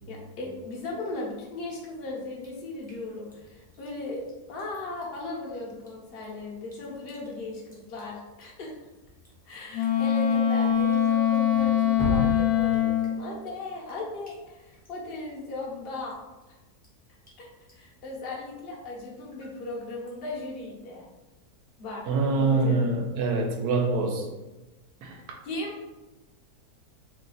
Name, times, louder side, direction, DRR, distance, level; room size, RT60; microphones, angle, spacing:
voice 1, 0.1-8.7 9.5-16.2 17.4-21.0 21.8-22.0 22.4-22.8 25.4-25.8, left 2 dB, 50° left, -2 dB, 0.8 m, -37 dB
Drip, 2.4-20.6, equal, 5° left, 0.7 m, -42 dB
Wind instrument woodwind instrument, 9.7-13.2, left 9 dB, 70° left, 0.9 m, -23 dB
voice 2, 22.1-24.3 25.0-25.4, right 3 dB, 75° right, 2 dB, 1.1 m, -25 dB
3.2 x 2.4 x 3.8 m, 1.1 s
omnidirectional pair, 1.7 m